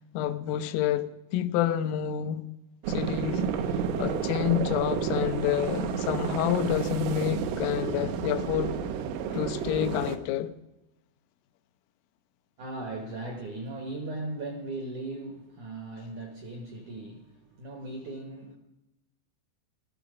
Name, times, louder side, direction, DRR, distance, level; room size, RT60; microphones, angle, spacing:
voice 1, 0.1-2.4 2.9-3.4 4.0-8.8 9.3-10.5, left 11 dB, 90° left, 3.4 m, -28 dB
sound 1, 2.8-10.2, right 7 dB, 85° right, 3.6 m, -30 dB
voice 2, 12.6-18.6, right 2 dB, 70° right, 1.9 m, -38 dB
16.5 x 13.5 x 5.0 m
omnidirectional pair, 5.7 m